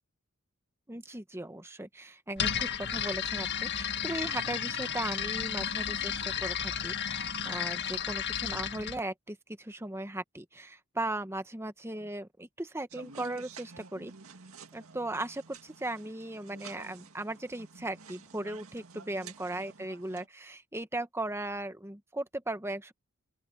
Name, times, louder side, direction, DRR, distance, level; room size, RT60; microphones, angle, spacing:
voice 1, 0.9-14.1 14.7-22.9, right 1 dB, 10° right, 1.1 m, -37 dB
sound 1, 2.4-9.0, left 8 dB, 50° left, 1.6 m, -33 dB
sound 2, 12.9-20.3, right 5 dB, 75° right, 2.2 m, -50 dB
open air
head